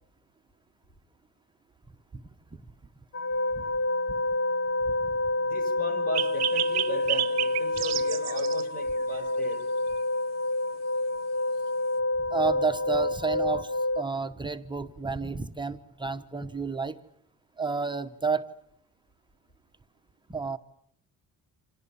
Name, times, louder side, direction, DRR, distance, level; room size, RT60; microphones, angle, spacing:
sound 1, 3.1-14.0, left 2 dB, 40° left, 1.3 m, -28 dB
voice 1, 5.4-9.6, equal, 25° left, 9 dB, 4.9 m, -37 dB
sound 2, 6.1-8.6, right 12 dB, 50° right, 1.0 m, -30 dB
voice 2, 12.3-16.9 17.6-18.5 20.3-20.6, right 4 dB, 15° right, 7 dB, 1.0 m, -31 dB
29.0 x 27.0 x 7.0 m, 0.69 s
cardioid pair, 160°, 34 cm